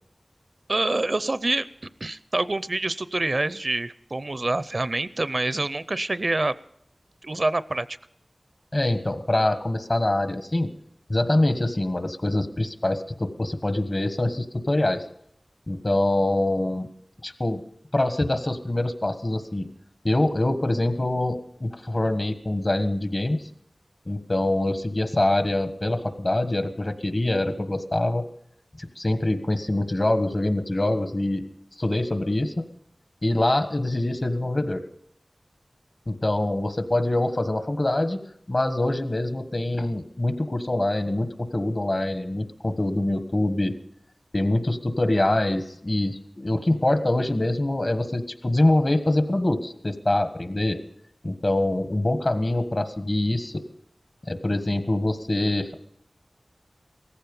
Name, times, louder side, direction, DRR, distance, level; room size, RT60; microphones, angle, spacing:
voice 1, 0.7-1.7 2.0-6.5 7.2-7.9, right 2 dB, 55° right, 15 dB, 0.5 m, -26 dB
voice 2, 8.7-10.7 11.1-15.0 15.7-16.9 17.2-17.6 17.9-19.7 20.0-23.4 24.0-28.2 28.8-31.4 31.8-32.6 33.2-34.8 36.1-38.2 38.5-43.7 44.3-50.8 51.2-53.6 54.3-55.7, left 1 dB, 50° left, 9 dB, 1.5 m, -24 dB
17.5 x 15.0 x 5.4 m, 0.72 s
wide cardioid pair, 60°, 0 cm